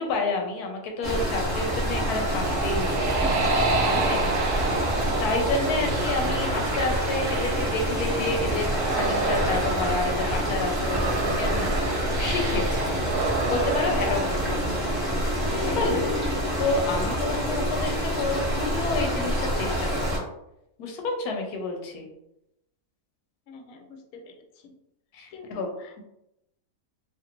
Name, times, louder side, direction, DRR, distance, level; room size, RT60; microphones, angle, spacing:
voice 1, 0.0-4.3 5.1-12.9 13.5-14.9 15.5-20.2 20.8-22.1 25.1-25.7, left 3 dB, 90° left, 2 dB, 1.1 m, -30 dB
sound 1, 1.0-20.2, equal, 20° right, 0.8 m, -27 dB
sound 2, 1.8-15.4, right 3 dB, 85° right, 1.1 m, -30 dB
sound 3, 15.4-17.4, left 2 dB, 70° right, 1.2 m, -35 dB
voice 2, 23.5-24.7 25.3-26.0, left 3 dB, 70° left, 3 dB, 0.9 m, -47 dB
2.8 x 2.5 x 2.8 m, 0.84 s
omnidirectional pair, 1.6 m